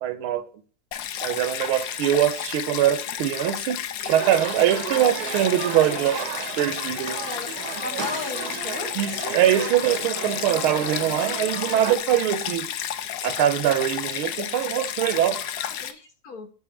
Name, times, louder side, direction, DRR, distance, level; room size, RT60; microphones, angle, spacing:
voice 1, 0.0-0.5 1.2-3.8 4.1-6.2 6.6-7.2 8.9-12.7 13.2-15.4, right 11 dB, 80° right, 1.7 m, -23 dB
Stream, 0.9-15.9, left 10 dB, 70° left, 1.2 m, -32 dB
sound 1, 4.0-12.0, right 8 dB, 60° right, 1.1 m, -34 dB
voice 2, 7.2-8.9 15.6-16.5, left 4 dB, 50° left, 1.3 m, -36 dB
8.7 x 4.1 x 7.0 m
omnidirectional pair, 2.3 m